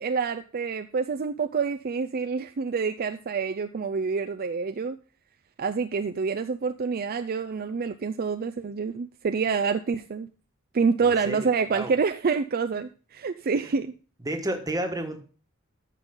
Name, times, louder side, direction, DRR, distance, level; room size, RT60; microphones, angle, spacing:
voice 1, 0.0-5.0 5.6-10.3 10.7-13.9, right 5 dB, 45° right, 9 dB, 0.4 m, -27 dB
voice 2, 11.0-11.9 14.2-15.2, right 1 dB, 20° right, 5 dB, 1.3 m, -31 dB
14.0 x 5.5 x 3.7 m, 0.37 s
head